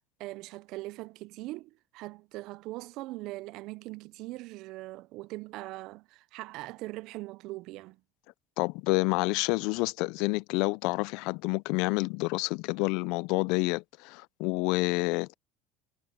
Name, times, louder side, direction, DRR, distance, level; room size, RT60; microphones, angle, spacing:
voice 1, 0.2-8.0, right 19 dB, 65° right, 0.6 m, -41 dB
voice 2, 8.6-15.3, left 26 dB, 70° left, 0.5 m, -28 dB
supercardioid pair, 95°, 0 cm